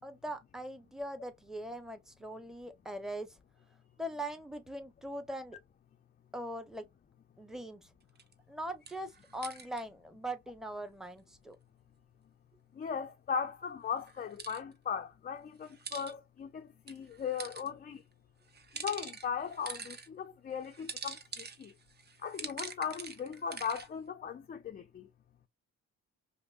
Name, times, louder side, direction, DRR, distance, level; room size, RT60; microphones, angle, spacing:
voice 1, 0.0-3.4 4.0-5.6 6.3-6.9 7.4-7.9 8.5-11.6, right 1 dB, ahead, 0.8 m, -41 dB
sound 1, 8.2-8.3 8.9-9.8 14.1-14.6 15.6-16.1 16.9-17.7 18.5-20.1 20.6-23.9, right 5 dB, 35° right, 0.7 m, -44 dB
voice 2, 12.8-18.0 18.7-21.7 22.2-25.1, left 7 dB, 30° left, 0.4 m, -38 dB
5.1 x 2.0 x 2.4 m
cardioid pair, 90°, 30 cm